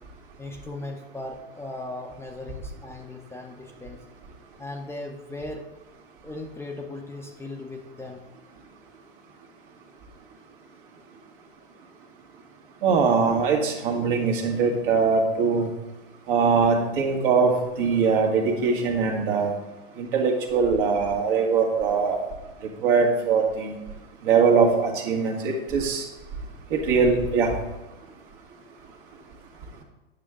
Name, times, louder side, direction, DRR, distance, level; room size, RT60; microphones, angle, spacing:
voice 1, 0.4-4.0 4.6-5.7 6.2-8.2, left 2 dB, 10° left, 2 dB, 0.7 m, -37 dB
voice 2, 12.8-15.7 16.3-19.5 20.0-22.3 22.8-23.8 24.2-26.0 26.7-27.6, right 5 dB, 60° right, 1 dB, 1.7 m, -22 dB
9.2 x 6.5 x 3.6 m, 1.1 s
hypercardioid pair, 100°, 31 cm